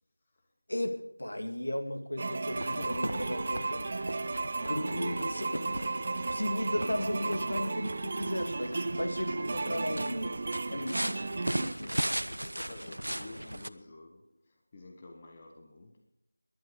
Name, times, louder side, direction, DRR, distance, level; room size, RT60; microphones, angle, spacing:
voice 1, 0.7-3.9 4.7-6.0 6.3-10.4 10.7-12.0, left 1 dB, 65° left, 2.7 m, -35 dB
sound 1, 2.2-11.7, right 3 dB, 25° right, 0.5 m, -34 dB
voice 2, 2.5-3.3 9.4-9.7 11.8-16.1, left 2 dB, 20° left, 1.1 m, -50 dB
sound 2, 2.5-13.7, right 1 dB, 75° right, 0.9 m, -38 dB
18.5 x 11.5 x 5.1 m
figure-of-eight pair, 170°, 0 cm